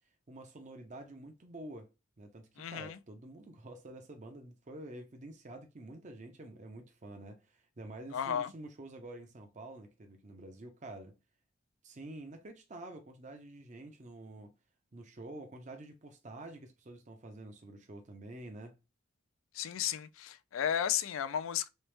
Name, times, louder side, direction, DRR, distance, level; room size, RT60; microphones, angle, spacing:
voice 1, 0.3-1.9 2.2-11.2 11.8-14.5 14.9-18.7, right 2 dB, 35° right, 0.5 m, -48 dB
voice 2, 2.6-3.0 8.1-8.5 19.5-21.7, left 9 dB, 70° left, 0.3 m, -34 dB
3.2 x 3.0 x 3.1 m
head